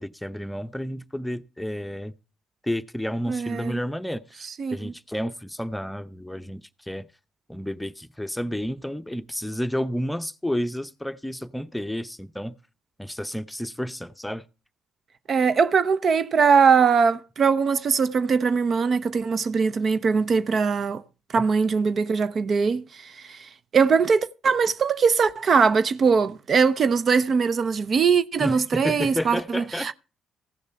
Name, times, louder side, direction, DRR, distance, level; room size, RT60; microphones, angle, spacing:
voice 1, 0.0-2.1 2.6-4.4 4.7-7.1 7.5-12.5 13.0-14.4 28.4-29.9, equal, 5° left, 0.8 m, -31 dB
voice 2, 3.3-3.8 4.4-4.9 15.3-21.0 21.3-29.9, right 5 dB, 50° right, 0.7 m, -21 dB
15.5 x 6.7 x 5.7 m
hypercardioid pair, 50°, 0 cm